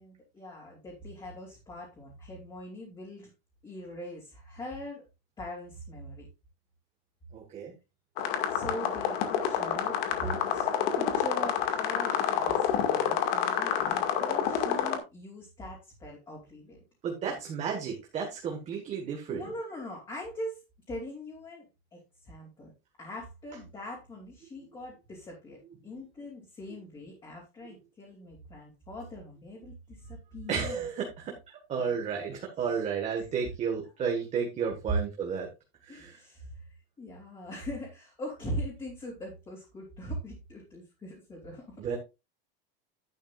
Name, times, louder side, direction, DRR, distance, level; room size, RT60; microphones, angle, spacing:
voice 1, 0.0-3.3 3.6-5.0 5.4-6.3 8.5-10.7 10.9-16.8 17.2-17.4 19.3-20.6 20.9-22.7 23.0-25.6 25.8-30.8 35.9-36.7 37.0-41.8, equal, 15° left, -3 dB, 3.0 m, -41 dB
voice 2, 7.3-7.7 17.0-19.4 30.5-31.3 31.7-35.5 35.8-36.2 41.8-42.0, right 6 dB, 20° right, 1 dB, 1.6 m, -32 dB
sound 1, 8.2-15.0, left 8 dB, 65° left, 2.1 m, -28 dB
11.0 x 10.0 x 2.5 m, 0.26 s
supercardioid pair, 180°, 31 cm